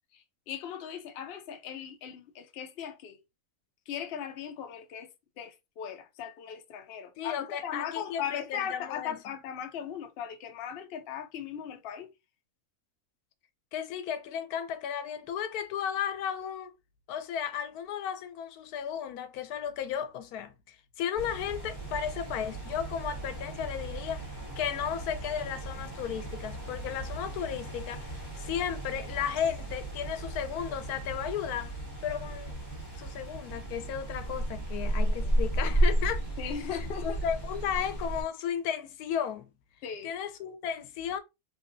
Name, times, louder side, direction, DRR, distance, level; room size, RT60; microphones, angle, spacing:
voice 1, 0.1-3.2 3.9-5.1 5.4-12.1 35.1-35.3 36.4-37.2 39.8-40.1, left 8 dB, 60° left, 0.6 m, -38 dB
voice 2, 7.2-9.3 13.7-16.7 17.1-24.3 24.6-31.8 32.0-32.6 33.0-36.5 37.0-39.5 40.0-41.2, left 8 dB, 90° left, 1.1 m, -34 dB
sound 1, 21.2-38.2, right 1 dB, 20° left, 1.5 m, -34 dB
3.3 x 2.8 x 2.5 m
omnidirectional pair, 1.5 m